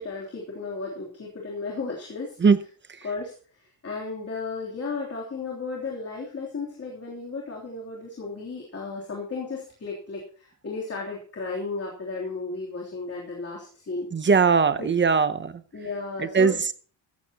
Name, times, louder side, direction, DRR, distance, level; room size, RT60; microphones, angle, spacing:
voice 1, 0.0-2.4 3.0-14.3 14.8-14.9 15.7-16.6, left 3 dB, 30° left, -3 dB, 3.3 m, -34 dB
voice 2, 14.1-15.6 16.3-16.5, right 5 dB, 25° right, 12 dB, 0.8 m, -19 dB
15.5 x 14.5 x 2.9 m, 0.41 s
wide cardioid pair, 165°, 46 cm